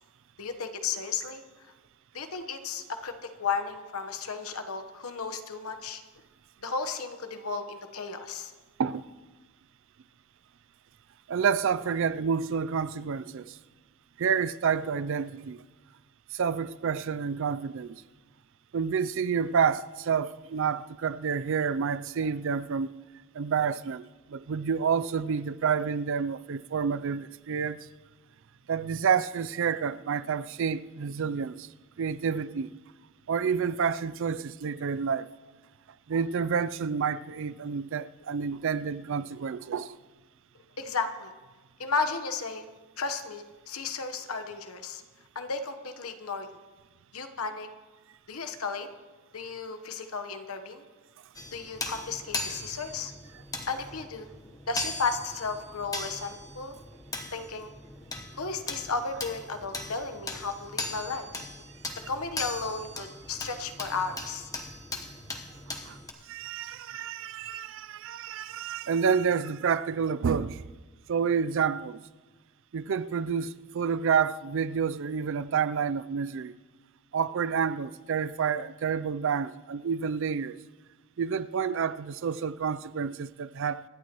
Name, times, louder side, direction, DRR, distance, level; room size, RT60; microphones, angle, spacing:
voice 1, 0.4-1.4 2.1-6.0 6.6-8.5 40.8-41.3 41.8-42.6 43.0-45.0 45.3-46.5 47.1-47.7 48.3-48.9 49.3-50.8 51.5-53.1 53.7-54.3 54.7-56.7 57.3-57.7 58.4-61.4 62.1-64.5, left 4 dB, 80° left, 1.1 m, -34 dB
voice 2, 11.3-13.5 14.2-15.6 16.3-18.0 18.7-22.9 23.3-24.0 24.3-27.8 28.7-31.7 32.0-32.7 33.3-35.3 36.1-40.0 56.0-56.1 65.9-66.0 66.3-70.6 71.1-72.0 72.7-76.5 77.1-80.6 81.2-83.8, right 6 dB, 60° right, 0.4 m, -29 dB
sound 1, 51.3-66.1, left 2 dB, 15° left, 1.1 m, -39 dB
25.5 x 11.5 x 3.0 m
head